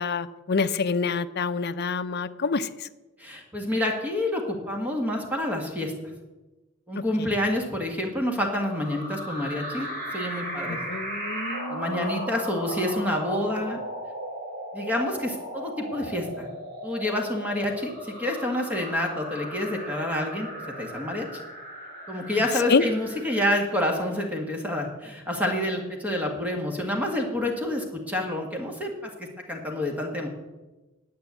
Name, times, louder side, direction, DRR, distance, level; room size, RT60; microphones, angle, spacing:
voice 1, 0.0-2.7 10.7-11.8 22.7-22.8, left 4 dB, 50° left, 11 dB, 0.6 m, -26 dB
voice 2, 3.2-5.9 6.9-10.9 11.7-13.8 14.7-16.5 16.8-20.5 20.8-21.3 22.1-29.1 29.5-30.3, left 1 dB, 5° right, 1 dB, 1.8 m, -28 dB
sound 1, 8.6-24.2, equal, 40° right, 4.6 m, -37 dB
10.5 x 8.8 x 8.2 m, 1.1 s
head